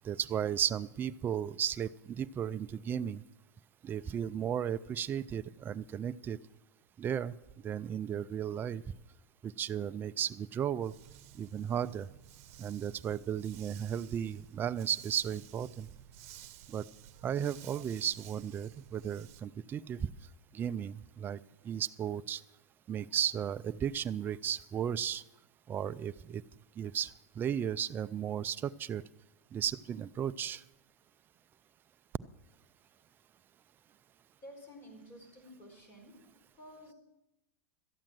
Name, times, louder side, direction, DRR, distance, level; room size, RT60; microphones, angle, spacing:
voice 1, 0.0-3.2 3.8-6.4 7.0-7.3 7.6-8.8 9.4-10.9 11.4-12.1 12.6-15.9 16.7-16.8 17.2-20.0 20.5-21.4 21.6-22.4 22.9-25.2 25.7-26.4 26.8-27.1 27.4-29.0 29.5-30.6, right 9 dB, 25° right, 15 dB, 0.4 m, -35 dB
Dog, 10.8-19.4, right 10 dB, 55° right, 0.9 m, -54 dB
voice 2, 34.4-36.2 36.5-36.9, equal, 25° left, 3 dB, 4.6 m, -52 dB
13.5 x 8.7 x 7.6 m, 0.91 s
hypercardioid pair, 110°, 8 cm